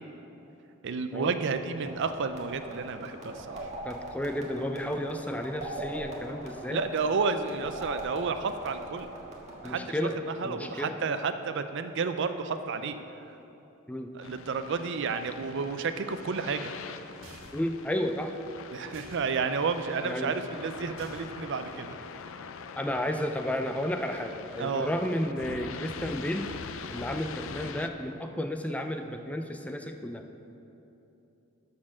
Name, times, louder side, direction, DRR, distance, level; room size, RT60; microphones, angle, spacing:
voice 1, 0.8-3.7 6.7-9.1 9.6-10.1 10.4-13.0 14.1-16.7 18.7-22.0 24.6-24.9, right 5 dB, 60° right, 9 dB, 0.5 m, -31 dB
sound 1, 1.8-9.7, right 1 dB, 35° right, 1.5 m, -41 dB
voice 2, 3.8-6.8 9.6-10.2 10.4-11.0 13.9-14.1 17.5-18.4 20.0-20.3 22.8-26.5 26.9-30.2, left 1 dB, 5° left, 6 dB, 0.4 m, -32 dB
sound 2, 14.2-27.9, left 5 dB, 70° left, 0.5 m, -43 dB
sound 3, 17.2-17.7 18.9-19.3 21.0-21.5, right 1 dB, 80° right, 1.7 m, -50 dB
13.0 x 4.5 x 6.2 m, 2.9 s
head